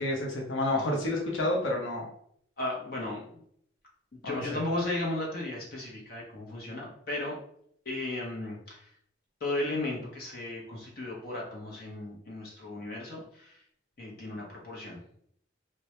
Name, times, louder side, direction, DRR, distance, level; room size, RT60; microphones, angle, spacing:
voice 1, 0.0-2.0 4.2-4.4, left 1 dB, 90° left, -1 dB, 0.7 m, -29 dB
voice 2, 2.6-3.4 4.1-7.4 7.8-8.9 9.4-13.6 14.0-15.0, left 2 dB, 50° left, -2 dB, 0.6 m, -35 dB
2.1 x 2.0 x 2.8 m, 0.68 s
head